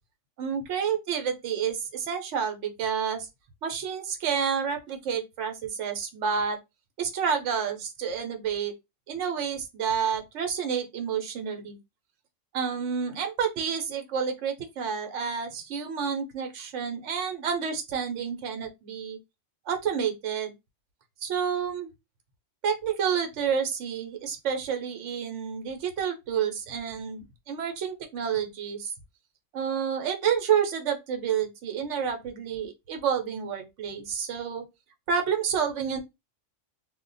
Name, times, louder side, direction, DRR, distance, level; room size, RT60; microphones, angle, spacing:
voice 1, 0.4-3.3 3.6-6.6 7.0-8.7 9.1-11.8 12.5-19.2 19.7-20.5 21.2-21.9 22.6-28.9 29.5-34.7 35.1-36.0, right 7 dB, 75° right, 1.0 m, -29 dB
2.4 x 2.1 x 3.8 m
omnidirectional pair, 1.3 m